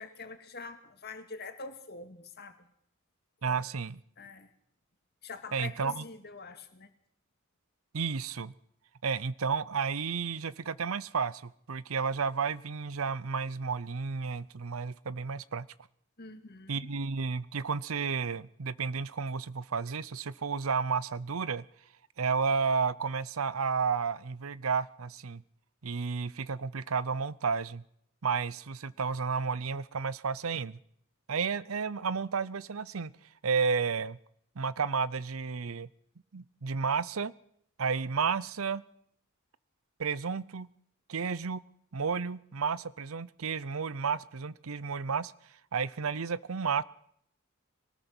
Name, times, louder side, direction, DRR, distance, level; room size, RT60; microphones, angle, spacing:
voice 1, 0.0-2.7 3.4-3.6 4.2-4.5 5.2-6.9 16.2-16.9, left 3 dB, 50° left, 7 dB, 2.2 m, -45 dB
voice 2, 3.4-4.0 5.5-6.0 7.9-8.5 9.0-15.7 16.7-21.6 22.2-25.4 25.8-27.8 28.2-30.8 31.3-33.1 33.4-34.2 34.6-35.9 36.3-37.3 37.8-38.8 40.0-40.7 41.1-41.6 41.9-45.3 45.7-46.8, right 5 dB, 85° right, 19 dB, 0.7 m, -32 dB
22.5 x 19.0 x 6.2 m, 0.69 s
head